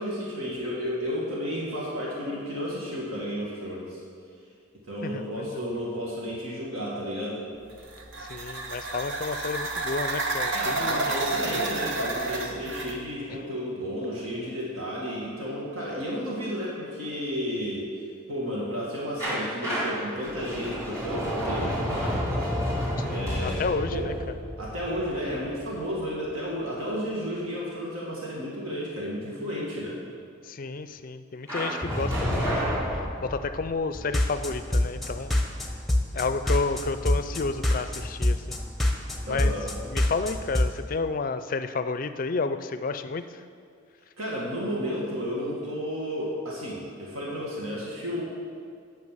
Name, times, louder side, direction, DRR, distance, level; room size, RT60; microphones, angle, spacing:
voice 1, 0.0-4.0 4.8-7.4 10.5-17.9 18.3-22.2 23.1-23.6 23.9-24.1 24.6-30.0 39.3-39.6 44.2-48.2, equal, 80° right, -5 dB, 1.9 m, -32 dB
voice 2, 5.0-5.7 8.2-11.1 11.5-11.6 13.3-13.4 23.0-24.1 30.4-35.7 36.1-38.6 39.3-39.6 39.8-43.4, left 4 dB, 40° left, 10 dB, 0.4 m, -31 dB
sound 1, 7.7-13.0, right 2 dB, 60° right, 0.9 m, -30 dB
sound 2, 19.2-26.0 31.5-33.7, equal, 15° right, 2.5 m, -30 dB
sound 3, 33.9-40.7, left 1 dB, ahead, 0.8 m, -26 dB
9.4 x 5.7 x 7.4 m, 2.3 s
head